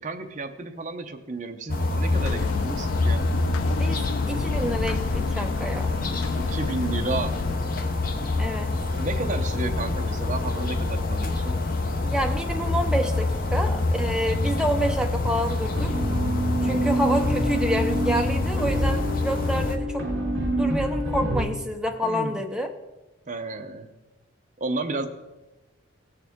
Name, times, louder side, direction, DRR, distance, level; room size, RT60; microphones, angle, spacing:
voice 1, 0.0-3.2 6.4-7.4 8.9-11.6 16.6-17.0 22.0-22.4 23.3-23.9 24.6-25.1, right 3 dB, 35° right, 5 dB, 0.7 m, -32 dB
sound 1, 1.7-19.8, left 2 dB, 45° left, 0.7 m, -26 dB
sound 2, 2.1-7.6, left 6 dB, 80° left, 0.3 m, -33 dB
voice 2, 3.7-5.9 8.4-8.7 12.0-16.0 16.6-20.1 20.6-22.7, equal, 5° right, 3 dB, 0.6 m, -28 dB
sound 3, 15.8-21.4, right 1 dB, 65° right, 3.7 m, -27 dB
16.0 x 6.5 x 3.6 m, 1.1 s
head